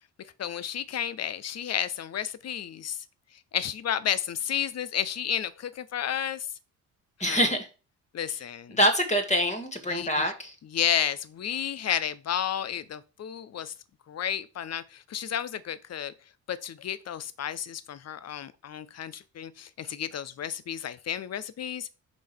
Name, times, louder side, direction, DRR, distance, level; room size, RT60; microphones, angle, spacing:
voice 1, 0.4-3.0 3.5-6.5 7.2-7.4 8.1-8.8 9.9-10.3 10.7-13.7 14.1-16.1 16.5-21.9, left 9 dB, 35° left, 0.9 m, -32 dB
voice 2, 7.2-7.7 8.7-10.5, equal, 15° left, 2.1 m, -25 dB
5.3 x 5.2 x 6.0 m
figure-of-eight pair, 45°, 42 cm